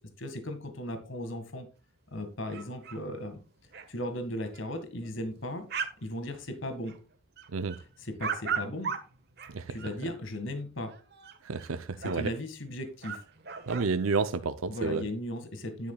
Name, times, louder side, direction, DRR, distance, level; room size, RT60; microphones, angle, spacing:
voice 1, 0.0-1.7 2.1-3.4 3.9-5.7 6.0-7.0 8.0-8.9 9.7-10.9 12.0-13.2 14.7-15.9, left 1 dB, 65° left, 8 dB, 1.8 m, -37 dB
sound 1, 2.5-3.0 3.3-3.4 3.6-3.9 4.5-4.6 5.0-6.0 6.3-7.0 7.4-9.9 10.9-11.7 12.0-12.1 12.7-12.8 13.0-13.9, right 6 dB, 50° right, 1.4 m, -37 dB
voice 2, 11.4-12.3 13.7-15.1, right 4 dB, 75° right, 10 dB, 0.6 m, -30 dB
10.0 x 9.9 x 2.3 m, 0.34 s
head